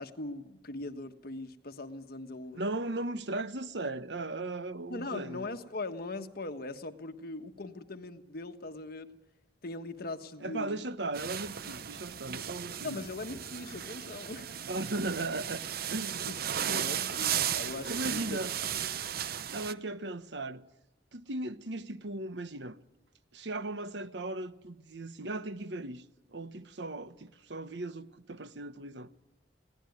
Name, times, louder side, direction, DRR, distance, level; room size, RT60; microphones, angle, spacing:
voice 1, 0.0-2.6 4.9-9.2 9.6-10.8 12.8-14.6 16.2-18.4, left 2 dB, 60° left, 1.4 m, -40 dB
voice 2, 2.5-5.5 10.4-13.0 14.7-15.6 15.9-16.2 16.7-17.0 17.9-18.5 19.5-20.6 21.1-22.8 23.3-26.0 26.3-29.1, right 2 dB, 80° right, 1.2 m, -37 dB
sound 1, 11.1-19.7, right 9 dB, 60° right, 0.8 m, -35 dB
21.5 x 17.0 x 9.4 m
head